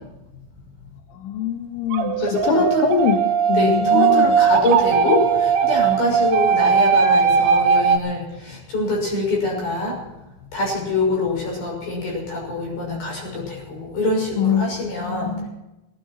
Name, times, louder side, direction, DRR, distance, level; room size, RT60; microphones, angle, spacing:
voice 1, 1.2-2.5 2.8-3.2 3.5-4.3 14.4-15.5, left 9 dB, 90° left, 5 dB, 3.7 m, -23 dB
sound 1, 1.9-8.0, right 6 dB, 85° right, 3.9 m, -18 dB
voice 2, 2.2-2.9 3.5-10.0 10.5-15.4, left 2 dB, 50° left, -1 dB, 7.9 m, -24 dB
18.5 x 16.5 x 4.4 m, 0.95 s
omnidirectional pair, 5.5 m